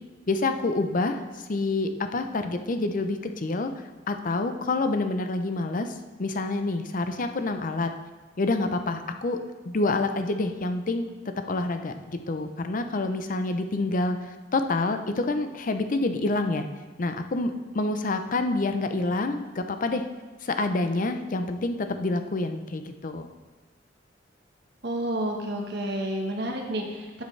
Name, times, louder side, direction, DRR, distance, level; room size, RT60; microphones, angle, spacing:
voice 1, 0.3-5.9 6.2-7.9 8.4-11.1 11.5-16.7 17.0-20.0 20.4-23.3, left 2 dB, 45° left, 8 dB, 0.6 m, -27 dB
voice 2, 24.8-27.2, right 1 dB, 65° right, 2 dB, 1.3 m, -30 dB
11.5 x 6.7 x 3.3 m, 1.2 s
head